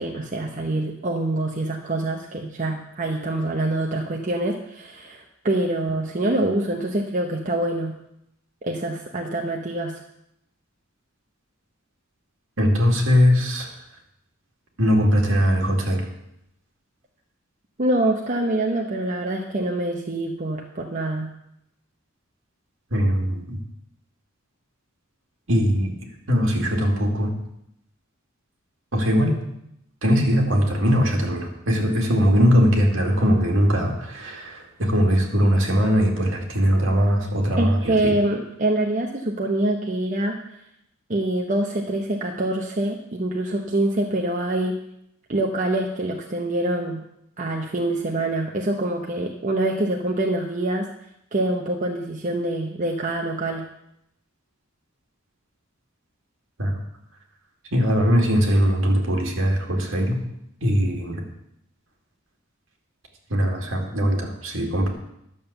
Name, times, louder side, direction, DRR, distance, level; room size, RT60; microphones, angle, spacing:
voice 1, 0.0-8.0 8.6-10.0 17.8-21.3 37.6-40.6 41.1-44.8 45.3-47.0 47.4-50.9 51.3-53.6, right 1 dB, 40° right, 1 dB, 0.9 m, -25 dB
voice 2, 12.6-13.7 14.8-16.1 22.9-23.6 25.5-25.9 26.3-27.3 28.9-29.4 30.0-38.1 56.6-56.7 57.7-60.2 60.6-61.2 63.3-64.9, equal, 65° right, 1 dB, 2.3 m, -20 dB
11.0 x 7.1 x 6.9 m, 0.79 s
head